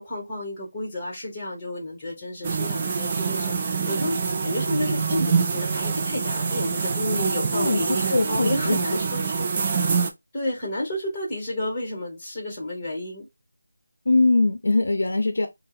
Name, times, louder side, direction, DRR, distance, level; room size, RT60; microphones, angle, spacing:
voice 1, 0.0-9.5 10.3-13.3, left 1 dB, 10° left, 1.1 m, -31 dB
sound 1, 2.4-10.1, right 5 dB, 20° right, 0.3 m, -25 dB
voice 2, 7.5-8.8 14.1-15.5, left 2 dB, 60° left, 0.6 m, -22 dB
4.3 x 2.0 x 2.4 m
figure-of-eight pair, 175°, 0 cm